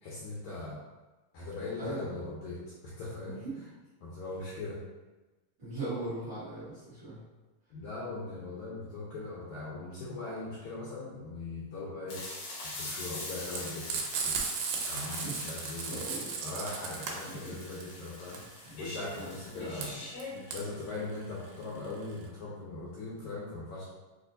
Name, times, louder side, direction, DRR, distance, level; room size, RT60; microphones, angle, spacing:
voice 1, 0.0-0.8 1.3-3.4 4.0-4.8 7.7-12.2 12.7-14.4 14.8-16.0 16.4-18.4 18.7-20.0 20.5-23.8, left 2 dB, 75° left, -6 dB, 1.9 m, -40 dB
voice 2, 1.8-2.2 3.3-3.6 5.6-7.2 14.9-15.5 15.8-16.3 16.8-16.9 17.3-17.5 18.2-18.4 18.6-18.8 19.1-19.9 20.3-20.4, right 2 dB, 45° right, -13 dB, 1.6 m, -40 dB
sound 1, 12.1-20.6, left 2 dB, 90° left, 3.2 m, -43 dB
Frying (food), 13.5-22.3, right 5 dB, 90° right, 2.3 m, -36 dB
6.8 x 2.6 x 2.6 m, 1.2 s
omnidirectional pair, 4.0 m